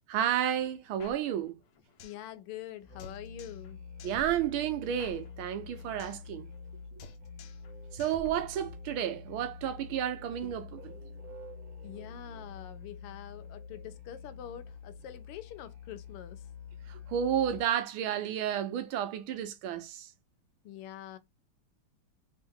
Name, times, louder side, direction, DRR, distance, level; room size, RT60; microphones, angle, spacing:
voice 1, 0.1-1.5 4.0-6.5 7.9-11.0 16.9-20.1, right 10 dB, 75° right, 1.5 m, -31 dB
sound 1, 1.0-2.3 2.5-2.6 3.0-3.7 4.0-6.3 6.5-6.7 7.0-7.7 8.0-9.0, left 4 dB, 65° left, 1.2 m, -51 dB
voice 2, 2.0-3.8 11.8-16.5 20.6-21.2, left 11 dB, 90° left, 1.6 m, -45 dB
Musical instrument, 2.8-17.8, left 5 dB, 60° right, 1.0 m, -47 dB
3.5 x 3.4 x 3.6 m
omnidirectional pair, 2.4 m